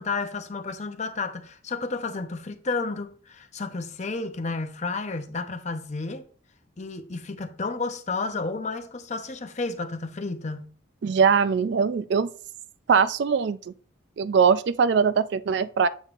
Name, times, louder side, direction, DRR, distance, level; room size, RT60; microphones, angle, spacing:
voice 1, 0.0-6.2 6.8-10.7, left 3 dB, 35° left, 0.7 m, -31 dB
voice 2, 11.0-12.3 12.9-13.6 14.2-15.9, right 6 dB, 60° right, 0.3 m, -21 dB
8.2 x 6.9 x 2.5 m
head